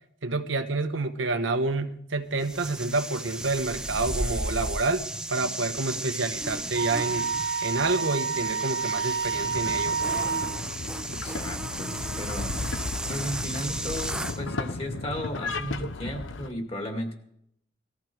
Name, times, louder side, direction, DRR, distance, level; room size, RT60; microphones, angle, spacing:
voice 1, 0.2-7.3 7.6-10.1, right 3 dB, 90° right, 7 dB, 1.2 m, -28 dB
sound 1, 2.4-14.4, right 1 dB, 5° right, 0.6 m, -34 dB
Wind instrument woodwind instrument, 6.7-10.6, right 6 dB, 65° right, 0.8 m, -29 dB
sound 2, 9.4-16.5, left 3 dB, 90° left, 0.9 m, -35 dB
voice 2, 11.1-17.1, equal, 30° left, 3 dB, 2.5 m, -35 dB
19.5 x 14.5 x 4.7 m, 0.73 s
head